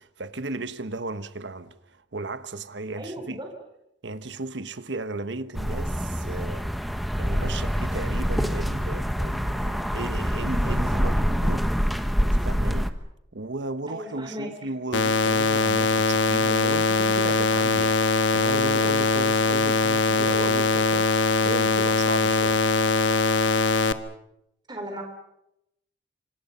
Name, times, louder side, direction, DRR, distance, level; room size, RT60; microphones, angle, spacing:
voice 1, 0.0-3.4 4.0-6.6 7.2-11.7 12.2-12.9 13.3-22.7, right 2 dB, 75° right, 1.3 m, -35 dB
voice 2, 3.0-3.5 13.9-14.5 24.7-25.0, equal, 25° right, 4.0 m, -36 dB
sound 1, 5.5-12.9, equal, ahead, 1.2 m, -25 dB
sound 2, 14.9-23.9, left 3 dB, 85° left, 1.2 m, -22 dB
26.5 x 25.5 x 5.7 m
head